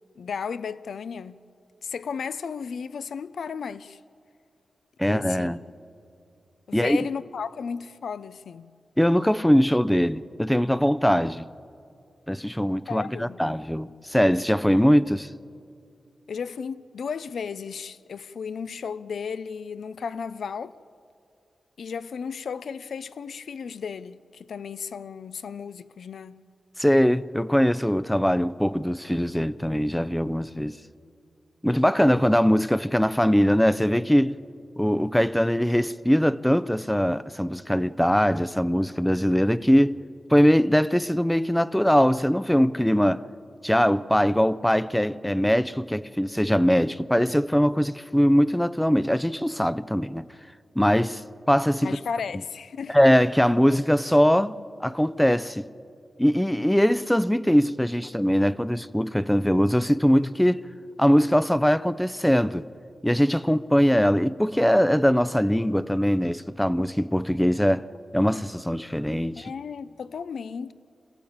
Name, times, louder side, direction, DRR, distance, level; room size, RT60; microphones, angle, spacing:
voice 1, 0.2-1.4 1.8-4.0 5.0-5.5 6.7-8.7 12.9-13.4 16.3-20.8 21.8-26.4 51.8-53.0 69.4-70.7, left 6 dB, 80° left, 0.6 m, -34 dB
voice 2, 5.0-5.6 6.7-7.1 9.0-11.5 12.3-15.3 26.8-30.8 31.6-34.3 34.8-40.0 40.3-43.2 43.6-50.3 50.8-51.2 51.5-52.0 52.9-55.7 56.2-60.7 61.0-62.7 63.0-67.9 68.1-69.5, equal, 5° left, 0.5 m, -21 dB
27.0 x 15.5 x 8.8 m
wide cardioid pair, 110°, 0 cm